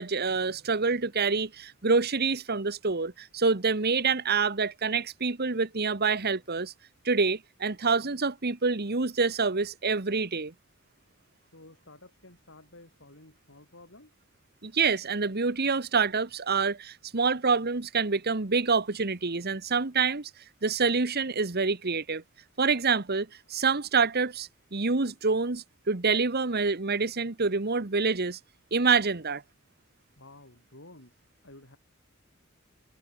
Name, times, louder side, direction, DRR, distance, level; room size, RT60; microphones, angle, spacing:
voice 1, 0.0-6.7 7.0-10.5 14.6-20.3 20.6-22.2 22.6-28.4 28.7-29.4, right 4 dB, 50° right, 1.4 m, -27 dB
voice 2, 11.4-14.1 30.2-31.8, left 2 dB, 65° left, 7.9 m, -52 dB
head